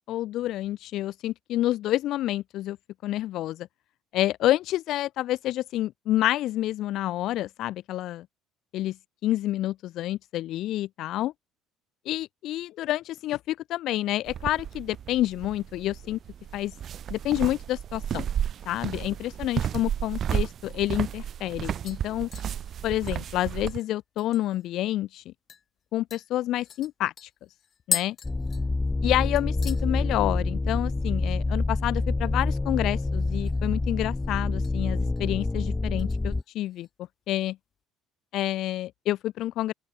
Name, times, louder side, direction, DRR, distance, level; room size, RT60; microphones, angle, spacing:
voice 1, 0.1-2.8 3.0-3.7 4.1-8.3 8.7-9.0 9.2-11.3 12.1-16.2 16.5-16.7 17.1-18.3 18.7-22.3 22.8-25.3 25.9-27.3 27.9-28.2 29.0-36.9 37.3-37.6 38.3-39.7, left 14 dB, 65° left, 2.4 m, -28 dB
sound 1, 14.3-23.8, right 9 dB, 50° right, 2.5 m, -33 dB
sound 2, 21.9-24.7 25.0-25.1 25.5-25.6 26.1-29.1 29.3-29.9 30.2-30.6 30.9-31.0 33.1-33.7 34.0-34.7 35.1-35.4 36.0-36.9 37.2-37.3, left 8 dB, 45° left, 2.1 m, -38 dB
sound 3, 28.2-36.4, left 3 dB, 15° left, 1.3 m, -27 dB
open air
hypercardioid pair, 75°, 0 cm